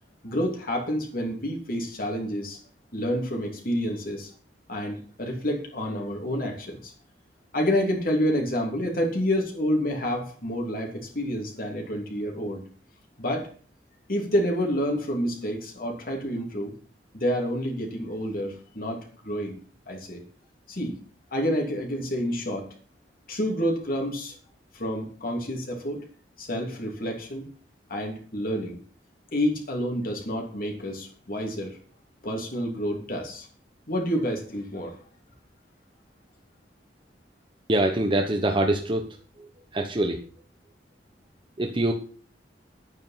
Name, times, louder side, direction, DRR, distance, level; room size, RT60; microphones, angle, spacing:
voice 1, 0.2-2.6 2.9-4.3 4.7-6.9 7.5-12.6 13.2-13.5 14.1-16.7 17.1-19.6 19.9-20.2 20.7-21.0 21.3-22.7 23.3-24.3 24.7-26.0 26.4-27.4 27.9-28.8 29.3-31.8 32.2-33.5 33.9-34.9, equal, 55° left, 1 dB, 3.0 m, -28 dB
voice 2, 37.7-39.1 39.7-40.2 41.6-41.9, right 1 dB, 30° right, 3 dB, 1.1 m, -24 dB
10.5 x 9.3 x 5.9 m, 0.42 s
head